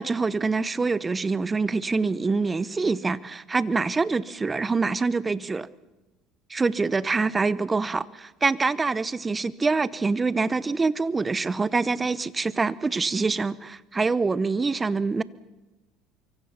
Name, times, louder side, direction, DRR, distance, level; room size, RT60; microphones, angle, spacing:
voice 1, 0.0-5.7 6.5-15.2, right 4 dB, 25° right, 18 dB, 1.0 m, -25 dB
24.5 x 24.0 x 5.9 m, 1.1 s
hypercardioid pair, 70°, 0 cm